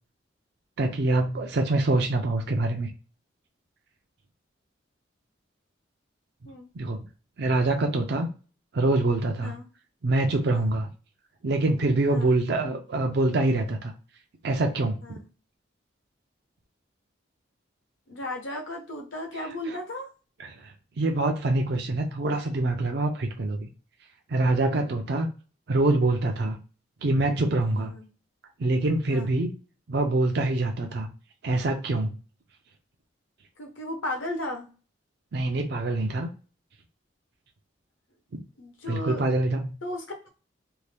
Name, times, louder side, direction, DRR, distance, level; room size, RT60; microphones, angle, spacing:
voice 1, 0.8-2.9 6.8-7.0 7.4-8.3 8.7-9.5 10.0-10.9 11.4-13.9 14.4-15.0 19.7-19.8 20.4-23.7 24.3-25.3 25.7-26.6 27.0-27.9 28.6-29.5 29.9-31.1 31.4-32.1 35.3-36.3 38.9-39.7, right 2 dB, 55° right, 4 dB, 0.4 m, -25 dB
voice 2, 18.1-20.1 27.8-28.1 29.1-29.3 33.6-34.7 38.6-39.5 39.8-40.3, left 1 dB, 75° left, 3 dB, 0.9 m, -35 dB
2.7 x 2.1 x 3.3 m, 0.35 s
head